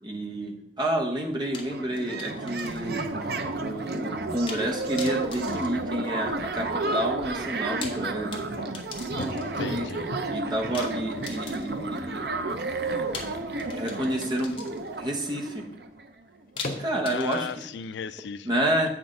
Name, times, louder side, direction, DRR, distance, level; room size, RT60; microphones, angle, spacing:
voice 1, 0.0-3.0 3.6-8.3 9.7-9.9 10.3-12.2 13.8-14.7 15.0-15.7 16.7-17.5 18.4-18.9, right 1 dB, 25° right, 1 dB, 1.0 m, -29 dB
sound 1, 1.2-1.3 1.5-16.1, right 3 dB, 65° right, 0.6 m, -32 dB
sound 2, 1.5-3.1 3.3-3.4 4.5-4.7 5.0-6.5 7.6-9.7 10.7-11.9 13.1-15.0 16.6-17.9, left 4 dB, 30° left, 0.9 m, -42 dB
sound 3, 2.2-2.6 7.8-12.7 13.4-13.5 14.2-14.6 15.3-15.5 16.6-17.1, left 1 dB, 50° left, 0.7 m, -39 dB
voice 2, 9.4-10.0 17.0-18.6, left 7 dB, 85° left, 14 dB, 0.3 m, -36 dB
7.8 x 5.9 x 3.8 m, 0.81 s
head